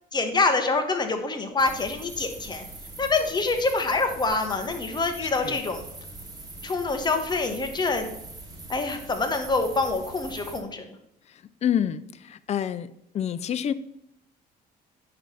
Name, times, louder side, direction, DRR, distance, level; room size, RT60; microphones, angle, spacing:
voice 1, 0.1-2.6 3.0-5.8 6.6-8.2 8.7-10.8, left 3 dB, 25° left, 5 dB, 1.3 m, -26 dB
sound 1, 1.6-10.6, right 2 dB, 20° right, 1.7 m, -42 dB
voice 2, 11.3-12.9 13.1-13.7, left 9 dB, 40° left, 14 dB, 0.5 m, -28 dB
9.7 x 3.3 x 6.8 m, 0.79 s
cardioid pair, 110°, 17 cm